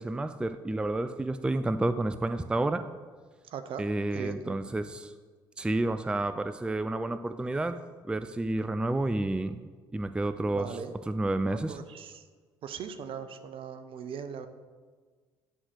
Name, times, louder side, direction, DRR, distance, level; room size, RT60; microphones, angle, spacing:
voice 1, 0.0-2.9 3.8-5.1 5.6-7.8 8.1-10.7 11.1-11.8, right 2 dB, 10° right, 12 dB, 0.4 m, -30 dB
voice 2, 3.5-3.9 4.1-4.6 10.4-11.0 11.5-12.2 12.6-14.5, right 7 dB, 55° right, 10 dB, 0.8 m, -39 dB
10.0 x 3.9 x 6.2 m, 1.5 s
hypercardioid pair, 55°, 11 cm